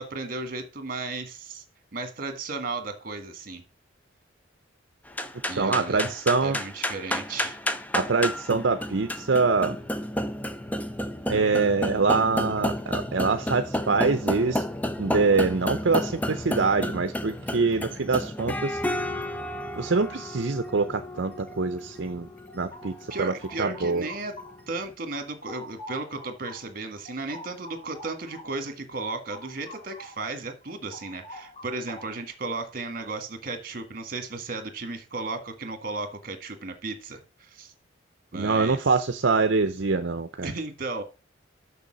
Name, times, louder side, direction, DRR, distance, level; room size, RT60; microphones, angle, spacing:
voice 1, 0.0-1.6 1.9-3.6 5.5-6.1 6.4-7.6 23.1-24.3 24.7-37.7 38.3-38.9 40.4-41.0, right 3 dB, 45° right, 8 dB, 1.7 m, -35 dB
sound 1, 5.1-24.6, left 1 dB, 10° left, 0.6 m, -32 dB
voice 2, 5.6-6.6 7.9-9.8 11.3-14.6 15.0-18.8 19.8-22.3 22.5-22.9 23.2-23.3 23.6-24.0 38.3-40.5, right 4 dB, 65° right, 9 dB, 0.6 m, -24 dB
sound 2, 22.5-24.8 25.1-30.3 30.6-32.3, left 1 dB, 30° left, 2.1 m, -46 dB
6.8 x 6.3 x 6.2 m, 0.31 s
head